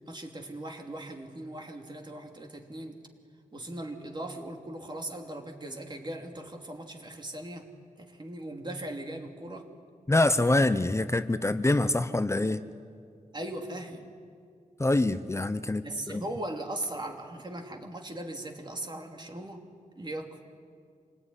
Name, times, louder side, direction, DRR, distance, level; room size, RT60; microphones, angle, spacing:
voice 1, 0.0-3.0 3.5-7.7 8.0-9.7 13.3-14.1 15.8-19.6 19.9-20.4, right 1 dB, 35° right, 3 dB, 2.9 m, -39 dB
voice 2, 10.1-12.6 14.8-16.2, left 2 dB, 20° left, 11 dB, 0.8 m, -25 dB
27.0 x 19.0 x 10.0 m, 2.2 s
wide cardioid pair, 100°, 14 cm